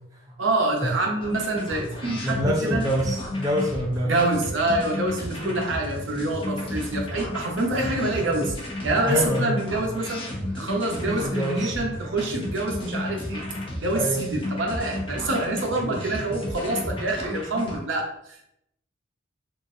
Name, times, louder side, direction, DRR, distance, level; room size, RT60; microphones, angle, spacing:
voice 1, 0.4-2.9 4.0-8.5 8.8-10.2 10.5-13.4 13.8-18.5, right 2 dB, 70° right, 1 dB, 0.7 m, -26 dB
sound 1, 1.2-17.8, left 1 dB, 25° left, 0.7 m, -33 dB
voice 2, 2.0-4.1 7.9-8.0 9.1-9.6 11.1-11.7 12.0-12.1 13.9-14.2, equal, 20° right, -2 dB, 0.4 m, -26 dB
3.7 x 2.5 x 2.7 m, 0.77 s
head